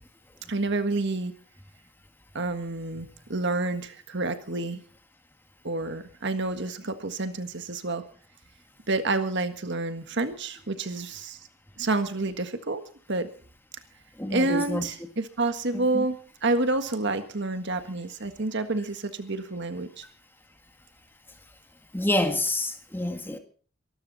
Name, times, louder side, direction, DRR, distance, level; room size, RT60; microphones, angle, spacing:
voice 1, 0.5-1.3 2.3-4.8 5.6-8.0 8.9-11.4 11.8-12.8 13.1-13.3 14.3-20.0, right 2 dB, 55° right, 1.6 m, -29 dB
voice 2, 14.2-14.9 15.7-16.1 21.9-23.4, left 1 dB, 10° left, 1.8 m, -28 dB
23.5 x 13.0 x 4.2 m
head